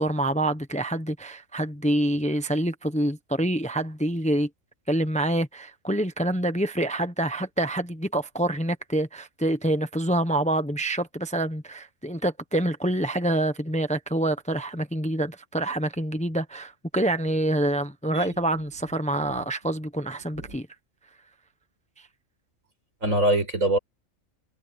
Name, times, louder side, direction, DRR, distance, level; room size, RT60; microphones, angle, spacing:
voice 1, 0.0-4.5 4.9-20.7, right 1 dB, 5° left, 1.0 m, -26 dB
voice 2, 23.0-23.8, right 1 dB, 75° right, 7.0 m, -24 dB
omnidirectional pair, 1.4 m